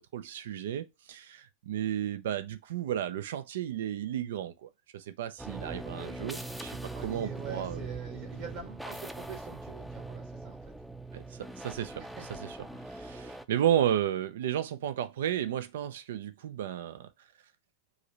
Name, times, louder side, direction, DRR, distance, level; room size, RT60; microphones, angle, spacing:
voice 1, 0.0-6.8 7.0-7.9 11.1-12.0 12.5-12.6 12.9-17.1, right 10 dB, 75° right, 0.4 m, -33 dB
sound 1, 5.4-13.5, right 2 dB, ahead, 0.4 m, -41 dB
voice 2, 6.9-10.7 12.0-12.6, right 6 dB, 60° right, 1.9 m, -45 dB
4.8 x 2.0 x 2.9 m
hypercardioid pair, 100°, 0 cm